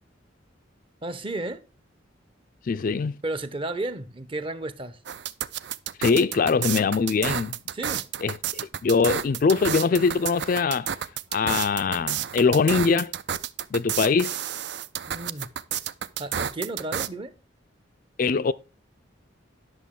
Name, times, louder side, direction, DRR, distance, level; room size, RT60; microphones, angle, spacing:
voice 1, 1.0-1.6 3.2-5.0 7.7-8.1 15.1-15.5 16.2-17.3, right 2 dB, 30° right, 0.7 m, -33 dB
voice 2, 2.7-3.2 6.0-7.6 8.2-10.9 11.3-13.1 13.7-14.4 18.2-18.5, left 5 dB, 45° left, 0.4 m, -22 dB
sound 1, 5.1-17.1, right 9 dB, 60° right, 0.5 m, -30 dB
10.5 x 6.5 x 3.7 m
head